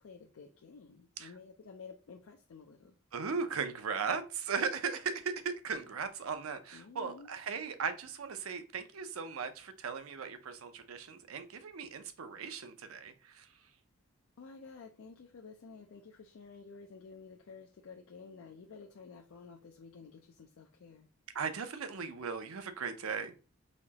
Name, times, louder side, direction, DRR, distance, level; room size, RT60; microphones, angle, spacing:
voice 1, 0.0-3.0 6.7-7.3 14.4-21.1, left 5 dB, 75° left, 0.4 m, -52 dB
voice 2, 3.1-13.5 21.3-23.3, right 5 dB, 85° right, 0.6 m, -37 dB
4.2 x 3.0 x 2.8 m
head